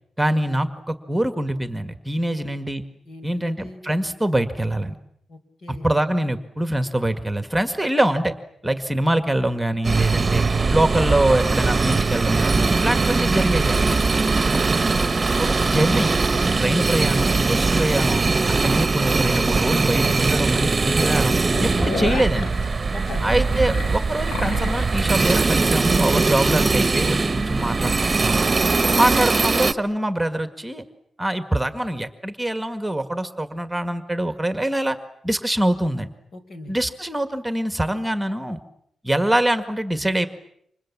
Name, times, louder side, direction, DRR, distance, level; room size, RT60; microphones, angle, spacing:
voice 1, 0.2-2.8 3.2-4.9 5.7-8.3 8.6-10.4 10.7-14.0 15.4-16.1 16.6-18.2 18.6-21.3 21.6-22.5 23.2-28.4 29.0-30.8 31.2-35.0 35.2-36.1 36.7-38.6 39.0-40.3, right 1 dB, 5° right, 8 dB, 1.8 m, -24 dB
voice 2, 3.0-3.8 5.3-5.9 8.6-8.8 22.9-23.3 36.3-36.7, left 2 dB, 60° left, 8 dB, 4.8 m, -41 dB
sound 1, 9.8-29.7, right 3 dB, 25° right, 1.2 m, -21 dB
sound 2, 19.7-19.8 20.3-20.4 20.7-20.8 21.2-24.9, left 5 dB, 85° left, 1.5 m, -32 dB
30.0 x 26.0 x 7.4 m, 0.73 s
cardioid pair, 115°, 0 cm